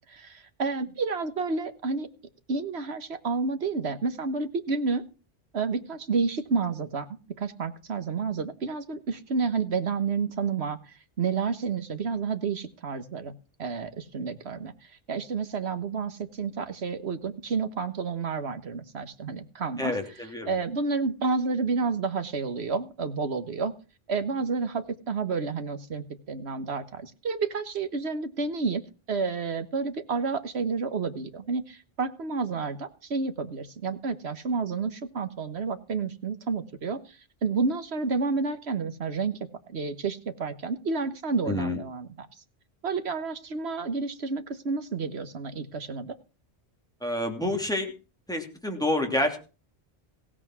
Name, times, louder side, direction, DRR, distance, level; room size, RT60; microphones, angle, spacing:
voice 1, 0.1-2.1 2.5-5.1 5.5-7.1 7.4-13.3 13.6-14.7 15.1-19.9 20.5-23.7 24.1-28.8 29.1-39.4 39.7-42.3 42.8-46.1, right 4 dB, 75° right, 10 dB, 1.6 m, -30 dB
voice 2, 19.8-20.5 41.5-41.8 47.0-47.9 48.3-49.4, left 1 dB, 5° left, 2 dB, 2.8 m, -28 dB
16.5 x 8.8 x 6.1 m, 0.34 s
omnidirectional pair, 1.1 m